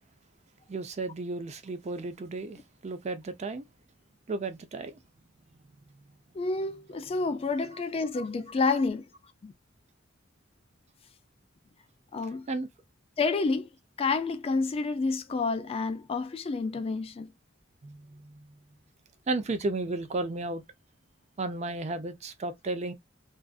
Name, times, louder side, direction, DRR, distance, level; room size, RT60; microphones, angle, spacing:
voice 1, 0.7-3.6 4.3-5.0 12.5-12.7 17.8-18.5 19.3-20.6 21.4-22.9, right 2 dB, 35° right, 0.4 m, -33 dB
voice 2, 6.3-9.1 9.4-9.5 12.1-12.5 13.2-13.7 14.0-17.3, left 4 dB, 30° left, 0.3 m, -29 dB
2.4 x 2.4 x 2.3 m
head